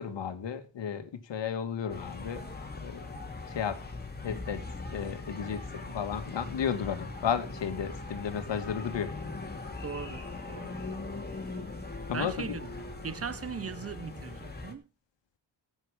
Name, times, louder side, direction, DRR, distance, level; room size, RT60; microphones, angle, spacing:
voice 1, 0.0-2.5 2.8-3.1 3.5-3.8 4.2-4.6 4.9-9.1 12.1-12.6, left 8 dB, 70° left, 2.2 m, -33 dB
sound 1, 1.9-14.7, left 3 dB, 20° left, 2.8 m, -40 dB
voice 2, 9.8-10.9 12.1-14.9, right 6 dB, 30° right, 1.1 m, -39 dB
14.0 x 8.7 x 5.1 m
cardioid pair, 85°, 45 cm